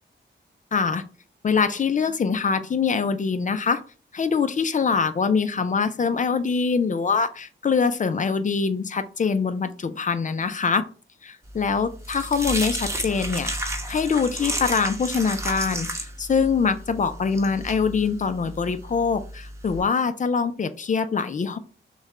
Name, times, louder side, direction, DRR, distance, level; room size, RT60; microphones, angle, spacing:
voice 1, 0.7-1.0 1.4-3.8 4.1-10.8 11.2-21.6, left 5 dB, 40° left, 11 dB, 0.4 m, -24 dB
sound 1, 11.5-19.8, right 1 dB, 15° right, 0.9 m, -32 dB
6.2 x 2.2 x 3.6 m, 0.38 s
wide cardioid pair, 110°, 20 cm